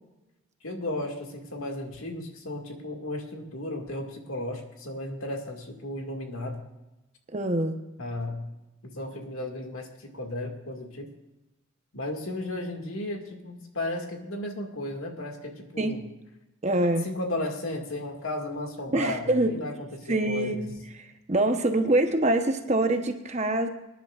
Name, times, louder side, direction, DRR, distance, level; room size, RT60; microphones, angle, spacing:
voice 1, 0.6-6.6 8.0-8.5 8.8-11.1 11.9-16.0 17.0-20.7, left 1 dB, 85° left, 2 dB, 2.1 m, -34 dB
voice 2, 7.3-7.8 15.8-16.0 16.6-17.1 18.9-19.5 20.1-20.6 21.3-23.7, right 2 dB, 35° right, 6 dB, 1.0 m, -24 dB
25.0 x 10.5 x 2.5 m, 1.0 s
head